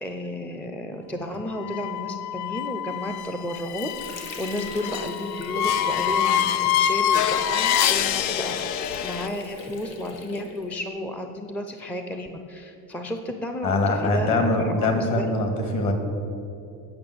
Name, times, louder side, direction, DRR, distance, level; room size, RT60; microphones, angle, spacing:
voice 1, 0.0-15.3, left 1 dB, 5° left, 5 dB, 0.4 m, -33 dB
sound 1, 1.6-9.3, left 10 dB, 70° left, 0.6 m, -25 dB
Water / Sink (filling or washing), 3.2-10.9, left 3 dB, 90° left, 1.5 m, -39 dB
voice 2, 13.6-15.9, left 2 dB, 45° left, 4 dB, 1.9 m, -23 dB
8.8 x 5.9 x 7.8 m, 2.8 s
cardioid pair, 120°, 40 cm